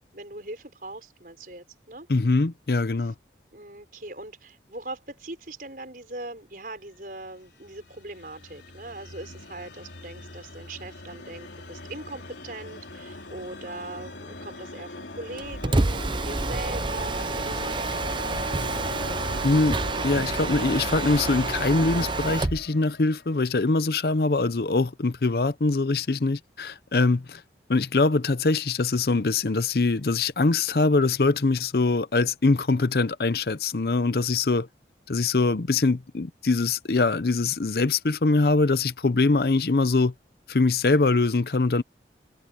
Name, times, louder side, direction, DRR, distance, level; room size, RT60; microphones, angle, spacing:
voice 1, 0.0-2.1 3.0-3.1 3.5-18.9, right 2 dB, 50° right, 5.8 m, -40 dB
voice 2, 2.1-3.1 19.4-27.4 27.7-34.7 35.1-40.1 40.5-41.8, left 3 dB, 60° left, 0.7 m, -23 dB
sound 1, 7.3-23.4, left 2 dB, 85° left, 3.7 m, -39 dB
Mechanisms, 15.4-22.7, right 3 dB, 25° right, 0.7 m, -28 dB
head